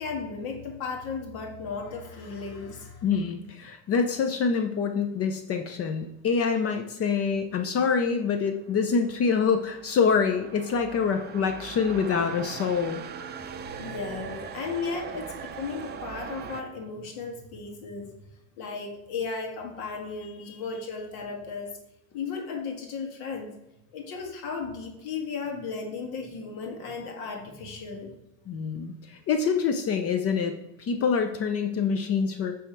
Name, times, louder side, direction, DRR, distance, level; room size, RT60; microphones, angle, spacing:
voice 1, 0.0-3.0 13.8-18.1 18.6-21.8 22.1-23.5 23.9-28.1, left 5 dB, 70° left, 1 dB, 1.9 m, -35 dB
voice 2, 3.0-13.0 28.5-32.6, left 5 dB, 40° left, 7 dB, 0.6 m, -26 dB
sound 1, 8.7-16.6, right 7 dB, 25° right, 0.6 m, -40 dB
8.9 x 3.5 x 4.6 m, 0.88 s
supercardioid pair, 125°, 39 cm